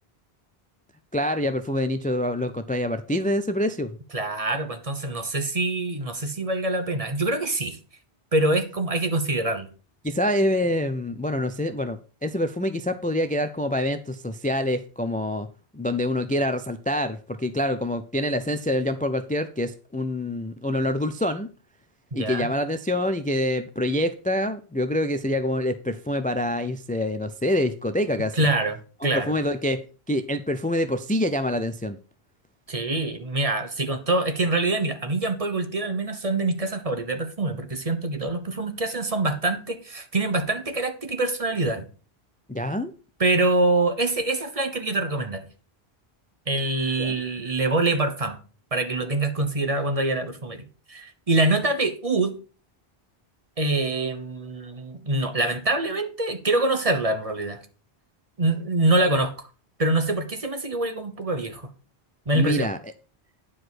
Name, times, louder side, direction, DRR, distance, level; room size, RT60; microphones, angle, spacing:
voice 1, 1.1-3.9 10.0-15.5 15.7-21.5 22.1-28.5 29.0-29.8 30.1-32.0 42.5-42.9 47.0-47.2 62.3-62.8, left 1 dB, 10° left, 10 dB, 0.4 m, -26 dB
voice 2, 4.1-7.8 8.3-9.7 22.1-22.5 28.4-28.8 29.0-29.3 32.7-41.8 43.2-45.4 46.5-48.4 48.7-52.3 53.6-57.6 58.4-59.5 59.8-61.6 62.3-62.7, right 2 dB, 35° right, 8 dB, 1.1 m, -25 dB
9.8 x 4.9 x 6.1 m, 0.37 s
omnidirectional pair, 1.1 m